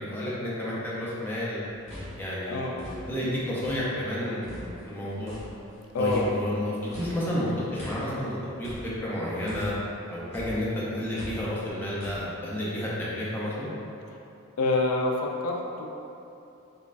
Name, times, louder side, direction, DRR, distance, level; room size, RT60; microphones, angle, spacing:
voice 1, 0.0-1.6 2.2-5.3 6.0-9.7 10.1-13.7, left 1 dB, 10° left, -8 dB, 0.5 m, -31 dB
sound 1, 1.7-4.1 4.4-10.0 10.3-12.2, left 1 dB, 30° left, 1.3 m, -43 dB
voice 2, 5.9-6.2 14.6-15.9, left 3 dB, 80° left, 0 dB, 0.4 m, -26 dB
5.1 x 2.3 x 2.5 m, 2.8 s
head